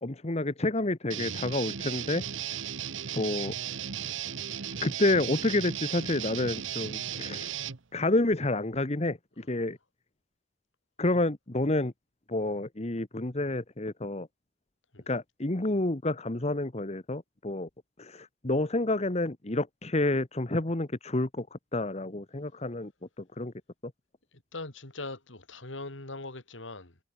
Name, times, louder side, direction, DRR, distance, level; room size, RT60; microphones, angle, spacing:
voice 1, 0.0-2.6 3.1-3.6 4.8-7.5 7.9-9.8 11.0-11.9 12.3-14.3 15.1-17.7 18.0-22.9 23.2-23.5, left 2 dB, 35° left, 1.4 m, -29 dB
Guitar, 1.1-7.8, right 9 dB, 85° right, 1.1 m, -36 dB
voice 2, 24.3-27.0, left 2 dB, 80° left, 3.3 m, -41 dB
head